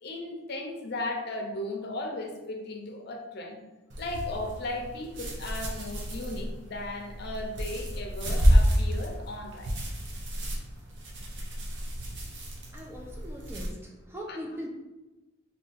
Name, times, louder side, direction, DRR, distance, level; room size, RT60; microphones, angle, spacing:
voice 1, 0.0-3.6 4.0-9.7 14.3-14.4, left 2 dB, 55° left, 2 dB, 0.5 m, -36 dB
sound 1, 3.9-13.7, equal, 60° right, 0.7 m, -29 dB
voice 2, 12.7-14.7, equal, 10° right, 0 dB, 0.3 m, -40 dB
2.7 x 2.5 x 3.8 m, 1.1 s
head